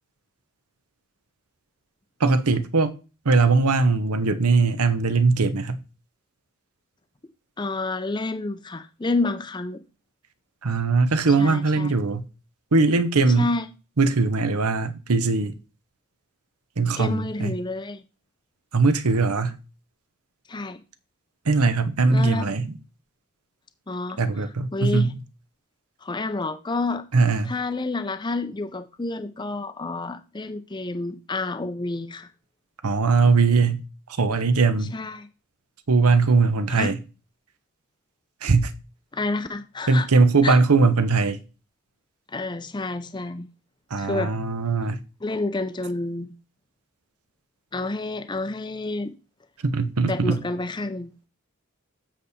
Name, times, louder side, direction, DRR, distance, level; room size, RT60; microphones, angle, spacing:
voice 1, 2.2-2.9 3.2-5.8 10.6-12.2 12.7-13.5 14.0-15.5 16.8-17.5 18.7-19.6 21.5-22.8 24.2-25.1 27.1-27.5 32.8-33.8 34.2-34.9 35.9-37.0 38.4-38.7 39.9-41.4 43.9-45.0 49.6-50.4, right 4 dB, 90° right, 0.9 m, -20 dB
voice 2, 7.6-9.8 11.4-11.9 13.4-13.7 17.0-18.0 20.5-20.8 22.1-22.5 23.9-25.1 26.0-27.0 27.4-32.3 34.9-35.3 36.7-36.9 39.1-40.1 40.4-40.6 42.3-43.5 44.0-44.3 45.2-46.3 47.7-49.1 50.0-51.1, left 2 dB, 20° left, 0.5 m, -29 dB
7.6 x 6.7 x 4.2 m
head